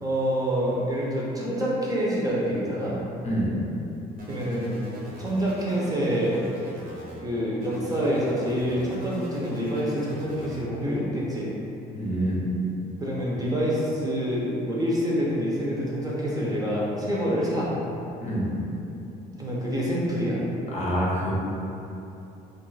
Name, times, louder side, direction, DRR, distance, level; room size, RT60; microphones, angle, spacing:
voice 1, 0.0-3.0 4.3-4.8 5.2-6.4 7.2-11.5 13.0-17.7 19.3-20.4, equal, 20° right, -6 dB, 0.6 m, -26 dB
voice 2, 3.2-3.5 12.0-12.4 18.2-18.5 20.7-21.3, right 1 dB, 40° left, -5 dB, 0.7 m, -26 dB
sound 1, 4.2-7.2 7.6-10.6, right 1 dB, 60° right, 0.8 m, -42 dB
2.4 x 2.3 x 4.0 m, 2.9 s
cardioid pair, 110°, 17 cm